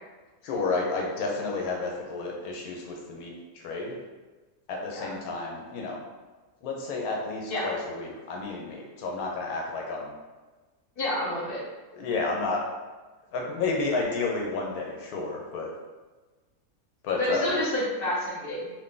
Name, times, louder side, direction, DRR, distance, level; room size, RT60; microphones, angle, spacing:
voice 1, 0.4-4.0 4.7-6.0 6.6-10.1 11.9-12.6 13.3-15.7 17.0-17.6, left 3 dB, 85° left, -1 dB, 1.1 m, -31 dB
voice 2, 11.0-11.6 17.2-18.7, left 1 dB, 45° left, -6 dB, 1.0 m, -29 dB
2.6 x 2.5 x 3.6 m, 1.3 s
omnidirectional pair, 1.6 m